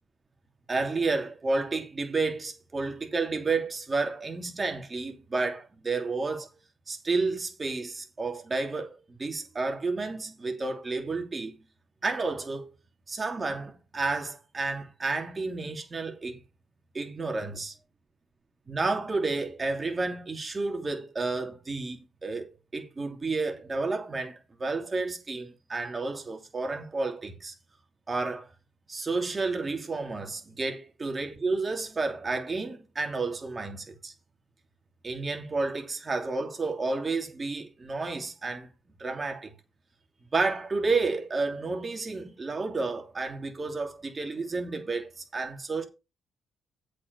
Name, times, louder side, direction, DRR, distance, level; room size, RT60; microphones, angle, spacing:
voice 1, 0.7-6.5 6.9-11.6 12.0-12.7 13.1-16.4 16.9-17.7 18.7-27.5 28.1-28.5 28.9-34.1 35.0-38.7 39.0-39.5 40.3-45.9, right 3 dB, 30° right, 2.8 m, -31 dB
8.2 x 5.1 x 6.8 m
cardioid pair, 90°, 0 cm